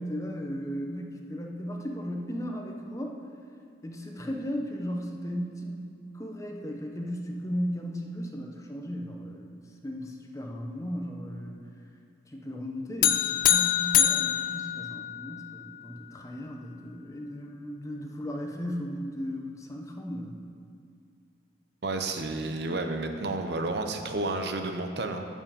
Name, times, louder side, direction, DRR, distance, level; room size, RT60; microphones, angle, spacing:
voice 1, 0.0-3.1 3.8-11.6 12.3-20.3, equal, 15° left, 1 dB, 0.7 m, -36 dB
sound 1, 13.0-15.5, left 11 dB, 50° left, 0.4 m, -24 dB
voice 2, 21.8-25.3, right 2 dB, 60° right, 5 dB, 0.7 m, -31 dB
9.7 x 5.4 x 7.2 m, 2.3 s
head